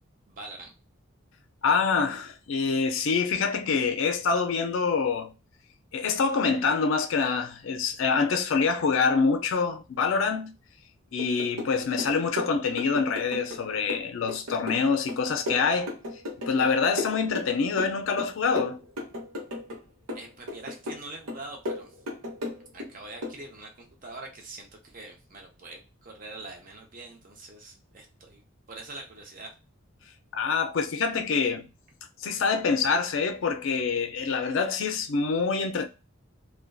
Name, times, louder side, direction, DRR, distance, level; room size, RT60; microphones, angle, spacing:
voice 1, 0.3-0.7 20.1-22.0 22.7-28.4 28.7-29.5, right 2 dB, 40° right, 0.6 m, -44 dB
voice 2, 1.6-5.3 5.9-10.5 11.1-15.9 16.5-18.8 30.3-31.7 32.2-35.9, left 5 dB, 65° left, 0.4 m, -26 dB
sound 1, 11.2-11.7 12.0-13.6 13.9-16.7 17.0-17.9 18.2-19.8 20.1-21.0 21.3-22.9 23.2-23.4, left 2 dB, 90° right, 0.9 m, -35 dB
2.5 x 2.2 x 2.2 m
head